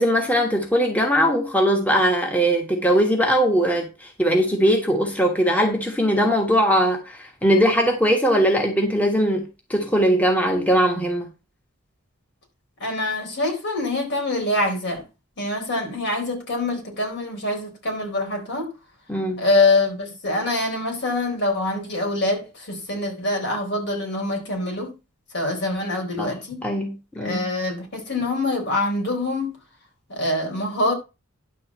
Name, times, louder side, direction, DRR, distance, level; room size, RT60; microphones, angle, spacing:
voice 1, 0.0-11.3 19.1-19.4 26.2-26.4 26.6-27.5, equal, 5° left, 1.4 m, -20 dB
voice 2, 12.8-15.1 15.4-18.7 19.4-24.9 25.3-26.6 27.2-29.6 30.1-30.9, left 2 dB, 55° left, 4.1 m, -25 dB
11.0 x 3.9 x 7.3 m
head